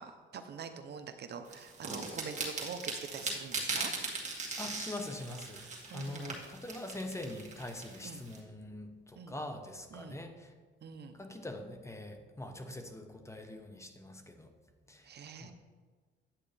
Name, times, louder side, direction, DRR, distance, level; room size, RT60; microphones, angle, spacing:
voice 1, 0.0-3.9 5.9-6.4 8.0-8.2 9.2-9.4 9.9-10.2 10.8-11.2 15.0-15.5, right 6 dB, 55° right, 8 dB, 0.8 m, -45 dB
sound 1, 1.5-8.4, right 3 dB, 35° right, 2.1 m, -39 dB
voice 2, 4.6-5.6 5.9-10.5 11.1-14.5 14.9-15.1 15.4-15.5, left 1 dB, 15° left, 5 dB, 1.0 m, -43 dB
10.5 x 8.4 x 3.4 m, 1.5 s
cardioid pair, 90°, 20 cm